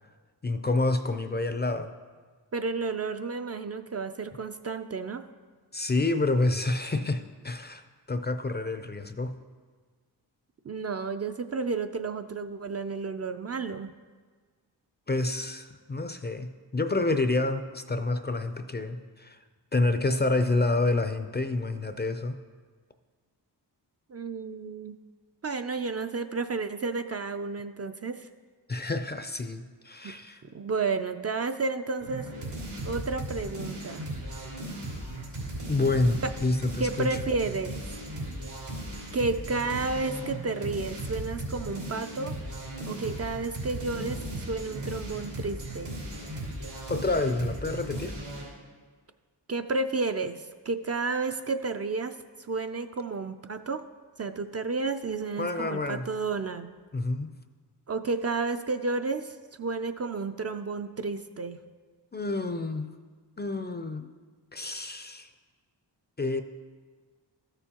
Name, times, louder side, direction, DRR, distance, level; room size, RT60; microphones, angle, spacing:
voice 1, 0.4-1.9 5.7-9.3 15.1-19.4 19.7-22.4 28.7-30.4 35.7-37.2 46.9-48.1 55.4-56.1 56.9-57.3 62.1-62.9 63.4-64.1 64.5-65.3 66.2-66.4, left 2 dB, 25° left, 9 dB, 0.4 m, -28 dB
voice 2, 2.5-5.2 10.6-13.9 24.1-25.0 25.4-28.3 30.0-30.1 30.5-32.3 32.8-34.1 36.8-37.8 39.1-42.3 42.9-45.9 49.5-53.8 54.2-56.7 57.9-61.6, right 4 dB, 35° right, 8 dB, 0.4 m, -31 dB
sound 1, 32.0-48.5, right 1 dB, 90° right, 2.8 m, -37 dB
13.0 x 6.9 x 2.9 m, 1.5 s
cardioid pair, 55°, 44 cm